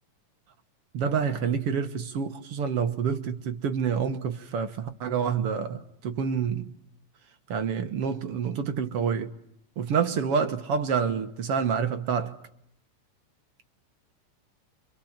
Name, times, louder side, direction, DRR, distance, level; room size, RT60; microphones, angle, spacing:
voice 1, 0.9-6.7 7.5-9.3 9.8-12.4, right 6 dB, 55° right, 1.9 m, -28 dB
29.0 x 25.5 x 7.3 m
omnidirectional pair, 3.7 m